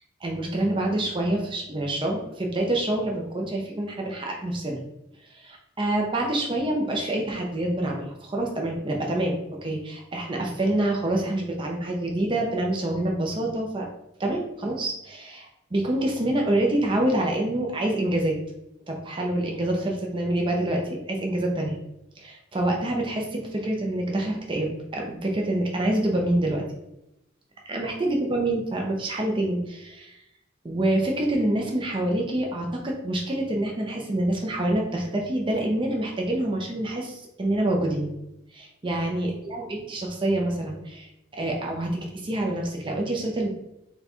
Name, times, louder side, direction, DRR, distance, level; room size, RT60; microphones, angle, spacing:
voice 1, 0.2-4.8 5.3-13.9 14.2-18.4 18.9-21.8 22.2-26.6 27.7-30.2 30.6-38.1 38.5-43.5, right 1 dB, 25° right, 0 dB, 0.5 m, -26 dB
3.8 x 2.3 x 4.3 m, 0.88 s
head